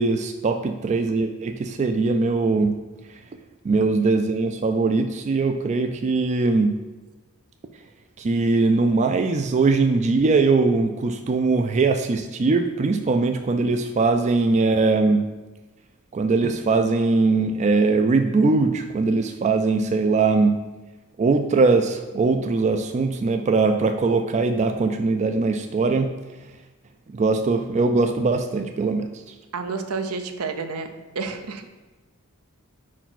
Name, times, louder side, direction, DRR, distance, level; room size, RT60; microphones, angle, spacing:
voice 1, 0.0-2.7 3.7-6.7 8.2-15.2 16.1-20.6 21.2-26.1 27.1-29.1, right 3 dB, 30° right, 6 dB, 0.3 m, -21 dB
voice 2, 29.5-30.9 31.2-31.6, right 4 dB, 80° right, 7 dB, 0.7 m, -29 dB
4.6 x 4.5 x 5.8 m, 1.2 s
head